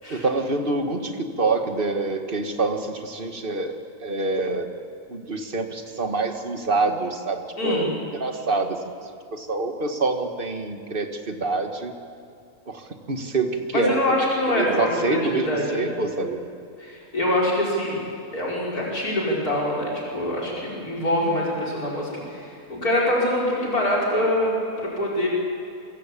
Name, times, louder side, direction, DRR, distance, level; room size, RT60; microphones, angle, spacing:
voice 1, 0.1-4.7 5.1-7.9 8.2-8.8 9.3-11.9 12.7-14.2 14.5-16.4, right 3 dB, 35° right, 5 dB, 2.0 m, -26 dB
voice 2, 7.6-7.9 13.7-15.8 16.8-18.1 18.3-25.3, left 1 dB, 85° left, -3 dB, 5.7 m, -24 dB
27.5 x 24.0 x 8.6 m, 2.4 s
omnidirectional pair, 1.5 m